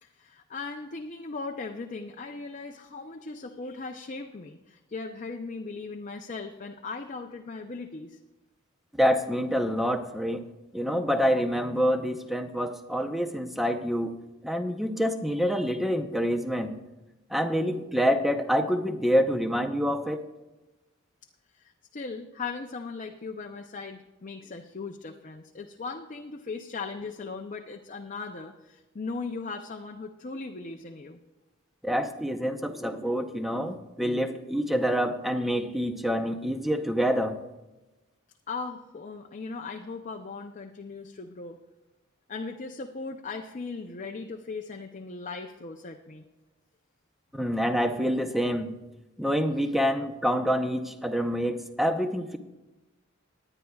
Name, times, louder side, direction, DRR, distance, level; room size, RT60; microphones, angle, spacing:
voice 1, 0.0-8.2 21.5-31.2 38.5-41.6 42.3-46.2, left 4 dB, 40° left, 3 dB, 0.6 m, -38 dB
voice 2, 9.0-10.4 10.7-14.2 14.4-16.7 17.3-20.2 31.8-37.4 47.3-48.7 49.2-52.4, equal, ahead, 6 dB, 0.7 m, -27 dB
19.5 x 9.9 x 2.3 m, 1.1 s
head